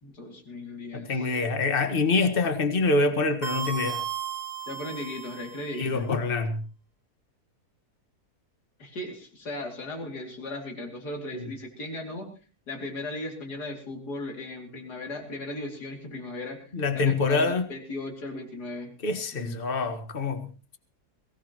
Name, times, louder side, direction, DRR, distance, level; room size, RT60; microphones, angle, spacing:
voice 1, 0.0-1.3 4.7-6.2 8.8-12.3 12.7-18.9 19.3-19.6, left 2 dB, 85° left, 2 dB, 3.3 m, -37 dB
voice 2, 0.9-4.0 5.8-6.6 11.3-11.5 16.7-17.7 19.0-20.5, left 3 dB, 35° left, 7 dB, 1.7 m, -25 dB
sound 1, 3.4-5.8, right 8 dB, 45° right, 1.3 m, -35 dB
22.5 x 17.0 x 3.0 m, 0.35 s
omnidirectional pair, 1.7 m